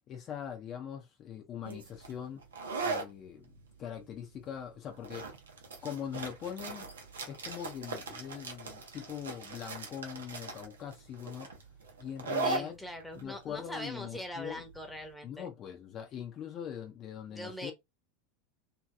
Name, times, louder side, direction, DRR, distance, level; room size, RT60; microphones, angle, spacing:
voice 1, 0.1-2.4 2.8-5.3 5.8-6.9 7.2-11.5 12.0-12.8 13.1-14.6 15.2-17.7, left 9 dB, 40° left, 0.6 m, -42 dB
sound 1, 1.7-15.1, right 3 dB, 80° right, 0.7 m, -40 dB
voice 2, 12.4-15.5 17.3-17.7, left 1 dB, 5° left, 1.0 m, -42 dB
2.9 x 2.9 x 2.3 m
figure-of-eight pair, 85°, 0 cm